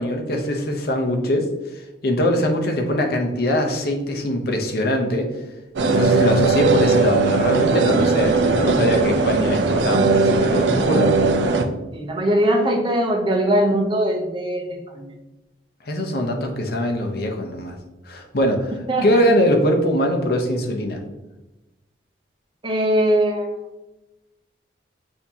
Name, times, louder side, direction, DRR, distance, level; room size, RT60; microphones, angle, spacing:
voice 1, 0.0-1.5 2.0-5.3 5.8-11.2 15.9-17.7 18.1-21.0, left 1 dB, 60° left, 3 dB, 0.7 m, -22 dB
sound 1, 5.8-11.6, right 3 dB, 85° right, 0.5 m, -19 dB
voice 2, 11.9-15.1 18.9-19.0 22.6-23.5, right 1 dB, 30° right, 1 dB, 0.7 m, -21 dB
6.5 x 2.8 x 2.8 m, 1.0 s
head